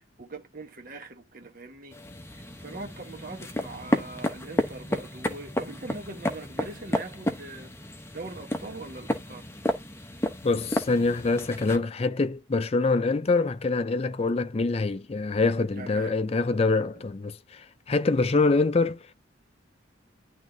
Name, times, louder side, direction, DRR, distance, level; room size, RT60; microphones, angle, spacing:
voice 1, 0.0-2.0 2.3-7.7 8.1-9.5 15.8-16.2 16.9-17.0, right 2 dB, 45° right, 1.1 m, -42 dB
sound 1, 1.9-11.8, equal, 10° left, 0.8 m, -32 dB
voice 2, 10.4-19.0, left 3 dB, 30° left, 0.4 m, -25 dB
10.5 x 3.6 x 2.7 m
head